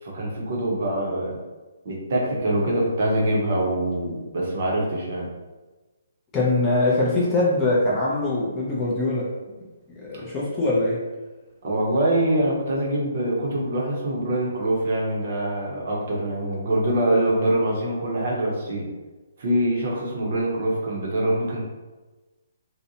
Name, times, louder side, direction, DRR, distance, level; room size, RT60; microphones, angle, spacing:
voice 1, 0.0-1.4 1.8-5.3 11.6-18.9 19.4-21.6, right 1 dB, 45° right, -2 dB, 0.6 m, -24 dB
voice 2, 6.3-9.3 10.0-11.0, left 2 dB, 10° left, -6 dB, 0.4 m, -22 dB
2.6 x 2.1 x 2.6 m, 1.2 s
hypercardioid pair, 170°, 0 cm